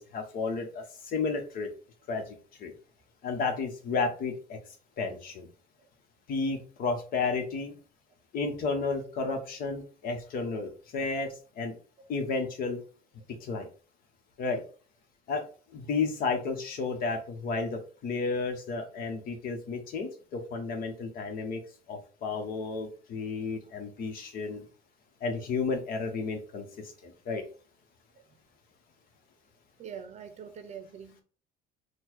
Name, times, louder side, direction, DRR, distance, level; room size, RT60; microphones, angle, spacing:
voice 1, 0.0-1.7 2.1-2.7 3.2-4.6 5.0-5.5 6.3-7.7 8.3-11.7 12.1-12.8 13.4-13.7 14.4-14.6 15.3-15.4 15.7-21.6 21.9-24.6 25.2-27.4, left 4 dB, 60° left, 1.2 m, -32 dB
voice 2, 29.8-31.2, right 7 dB, 45° right, 0.6 m, -45 dB
4.3 x 2.4 x 4.6 m
cardioid pair, 120°, 17 cm